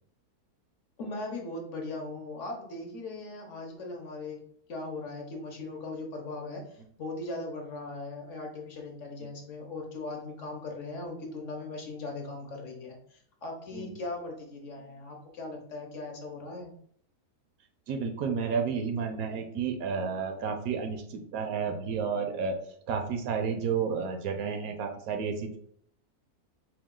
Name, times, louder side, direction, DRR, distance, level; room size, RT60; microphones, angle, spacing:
voice 1, 1.0-4.4 4.7-16.7, left 2 dB, 60° left, 1 dB, 0.9 m, -39 dB
voice 2, 17.9-22.6 22.9-25.6, right 6 dB, 75° right, 5 dB, 1.0 m, -31 dB
4.6 x 2.2 x 3.6 m, 0.66 s
omnidirectional pair, 1.6 m